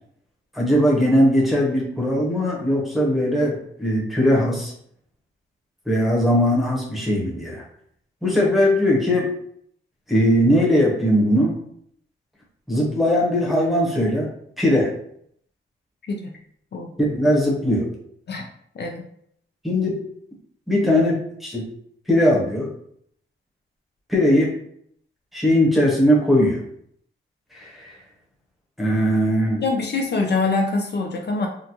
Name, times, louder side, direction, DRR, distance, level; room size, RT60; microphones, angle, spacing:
voice 1, 0.5-4.7 5.9-7.6 8.2-9.3 10.1-11.6 12.7-14.3 14.6-14.9 17.0-17.9 19.6-20.0 20.7-21.6 22.1-22.7 24.1-24.5 25.3-26.6 27.5-27.9 28.8-29.6, equal, ahead, -4 dB, 0.8 m, -19 dB
voice 2, 18.8-19.1 29.6-31.5, left 3 dB, 55° left, 2 dB, 0.4 m, -24 dB
3.7 x 2.3 x 2.9 m, 0.68 s
wide cardioid pair, 155°, 20 cm